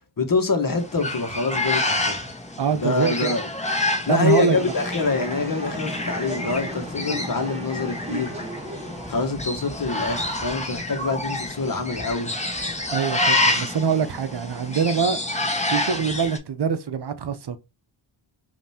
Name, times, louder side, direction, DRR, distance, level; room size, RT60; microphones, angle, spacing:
voice 1, 0.2-2.2 2.8-3.5 4.1-8.3 9.1-12.3, left 3 dB, 45° left, 1.4 m, -25 dB
sound 1, 0.8-16.4, left 2 dB, 15° left, 1.3 m, -28 dB
voice 2, 2.6-3.3 4.1-4.6 12.9-15.2 15.7-17.6, right 6 dB, 55° right, 0.8 m, -24 dB
sound 2, 4.5-9.5, equal, 15° right, 2.0 m, -35 dB
5.2 x 2.9 x 2.8 m
cardioid pair, 55°, 48 cm